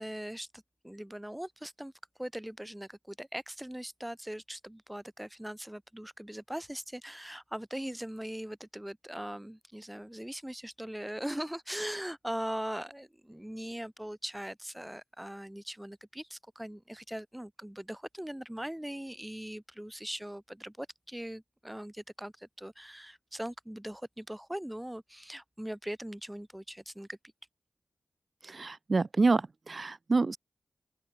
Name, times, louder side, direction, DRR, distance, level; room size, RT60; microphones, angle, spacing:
voice 1, 0.0-1.9 2.2-27.2, equal, 10° right, 2.1 m, -40 dB
voice 2, 28.4-30.4, right 3 dB, 50° right, 1.1 m, -27 dB
open air
cardioid pair, 60°, 0 cm